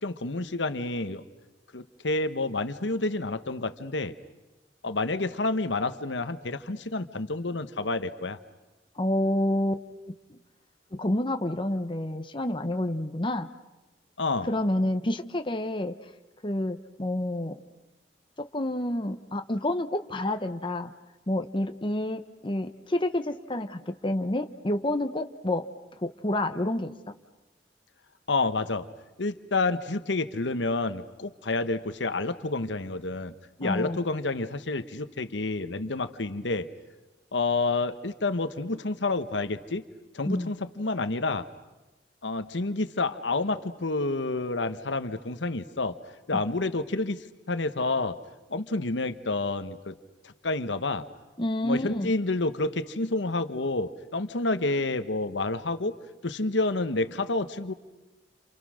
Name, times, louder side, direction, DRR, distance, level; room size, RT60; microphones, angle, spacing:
voice 1, 0.0-1.2 1.7-4.1 4.8-8.4 14.2-14.5 28.3-28.9 29.2-33.3 33.6-36.7 37.3-39.8 40.1-41.5 42.2-45.9 46.3-48.2 48.5-50.0 50.2-51.0 51.6-56.0 56.2-57.7, left 3 dB, 85° left, 11 dB, 1.2 m, -29 dB
voice 2, 9.0-9.8 10.9-13.5 14.5-15.9 16.4-17.6 18.4-20.9 21.3-25.7 26.0-27.1 33.6-34.0 40.2-40.5 46.3-46.4 51.4-52.1, left 1 dB, 30° left, 7 dB, 1.0 m, -29 dB
29.5 x 28.0 x 6.4 m, 1.1 s
head